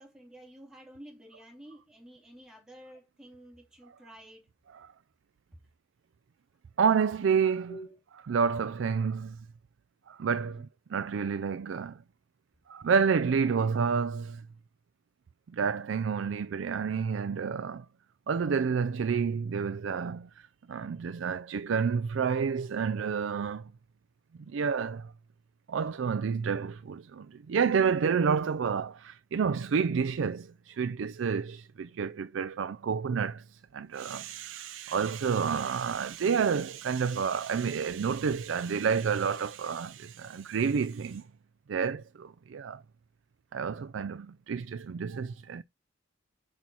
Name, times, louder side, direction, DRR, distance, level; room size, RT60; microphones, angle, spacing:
voice 1, 0.0-4.5 7.7-8.0 10.4-10.6, equal, 5° right, 2.8 m, -50 dB
voice 2, 6.8-7.7 8.3-9.4 10.1-12.0 12.7-14.4 15.5-17.9 18.3-23.7 24.5-25.1 25.7-41.3 41.7-42.8 43.5-45.6, right 6 dB, 65° right, 0.4 m, -29 dB
6.2 x 5.4 x 4.3 m
head